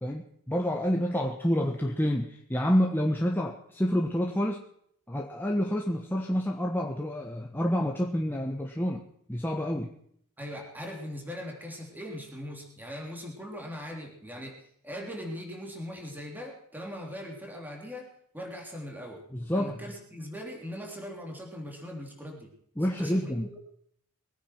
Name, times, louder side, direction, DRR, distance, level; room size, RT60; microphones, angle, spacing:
voice 1, 0.0-4.6 5.1-9.0 9.3-9.9 19.3-19.8 22.8-23.5, equal, 10° left, 0 dB, 1.2 m, -28 dB
voice 2, 10.4-14.6 14.8-19.2 19.5-22.5 23.0-23.3, equal, 10° right, 1 dB, 3.4 m, -40 dB
22.5 x 9.9 x 4.5 m, 0.65 s
head